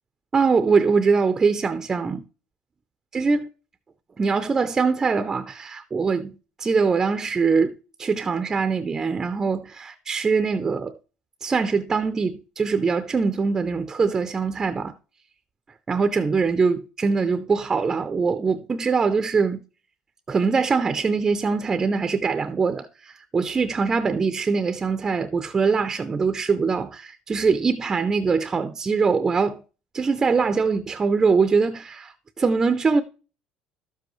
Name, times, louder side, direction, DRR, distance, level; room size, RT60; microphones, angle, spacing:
voice 1, 0.3-2.2 3.1-3.5 4.2-7.7 8.0-11.0 11.4-14.9 15.9-19.6 20.3-29.6 29.9-33.0, right 5 dB, 20° right, 0.5 m, -23 dB
12.0 x 7.6 x 3.1 m
cardioid pair, 135°, 2 cm